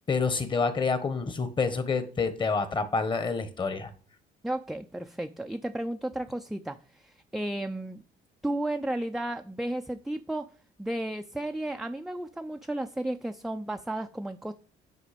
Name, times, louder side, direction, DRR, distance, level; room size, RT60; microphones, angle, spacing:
voice 1, 0.0-3.9, left 4 dB, 30° left, 1.2 m, -28 dB
voice 2, 4.4-8.0 8.4-10.5 10.8-14.5, right 1 dB, ahead, 0.4 m, -33 dB
9.5 x 5.0 x 5.1 m
cardioid pair, 110°, 17 cm